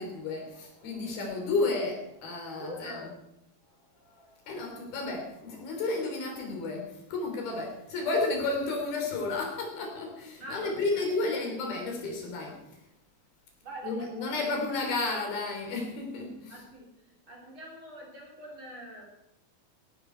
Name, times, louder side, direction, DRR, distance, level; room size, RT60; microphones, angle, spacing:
voice 1, 0.0-3.1 4.0-12.8 13.8-16.6, left 3 dB, 80° left, 2 dB, 5.4 m, -32 dB
voice 2, 2.5-3.1 10.4-11.0 13.6-14.4 16.5-16.9 17.3-19.0, right 1 dB, 35° right, -2 dB, 4.8 m, -43 dB
16.5 x 13.5 x 4.6 m, 0.87 s
omnidirectional pair, 4.3 m